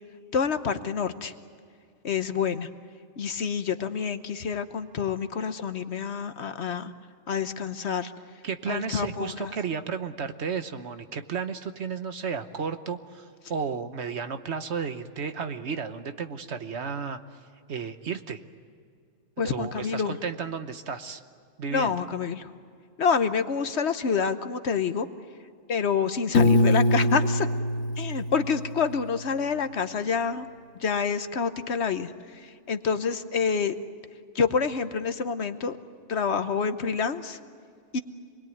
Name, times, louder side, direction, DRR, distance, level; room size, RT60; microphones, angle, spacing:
voice 1, 0.3-1.3 2.0-2.7 3.2-6.9 7.3-8.1 8.7-9.5 19.4-20.2 21.7-22.5 23.0-25.1 25.7-27.5 28.0-30.5 30.8-33.7 34.3-35.8 36.1-37.4 37.9-38.0, left 6 dB, 60° left, 9 dB, 1.2 m, -27 dB
voice 2, 8.4-17.2 17.7-18.4 19.4-21.2 21.6-21.9, right 6 dB, 60° right, 9 dB, 1.3 m, -33 dB
Piano, 26.3-29.3, left 2 dB, 80° left, 1.6 m, -23 dB
27.0 x 21.5 x 9.3 m, 2.2 s
omnidirectional pair, 1.3 m